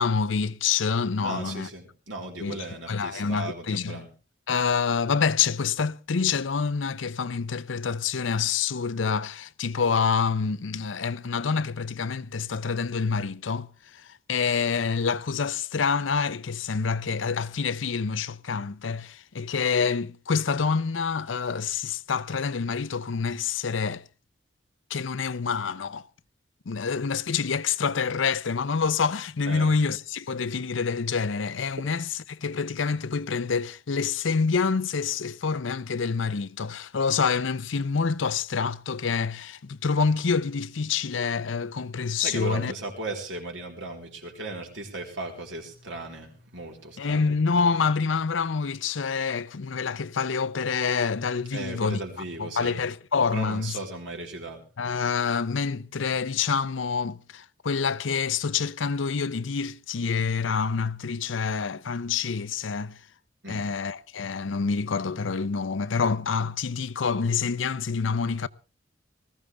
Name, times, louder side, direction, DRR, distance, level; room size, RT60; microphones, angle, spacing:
voice 1, 0.0-1.7 2.4-4.0 4.5-24.0 24.9-26.1 26.7-42.7 47.0-52.0 52.4-53.8 54.8-63.0 63.5-68.5, left 5 dB, 85° left, 0.6 m, -27 dB
voice 2, 1.2-4.1 29.4-29.7 42.2-47.4 51.5-52.8 53.3-54.6 63.4-63.6, right 2 dB, 80° right, 3.9 m, -36 dB
19.5 x 15.0 x 3.4 m
head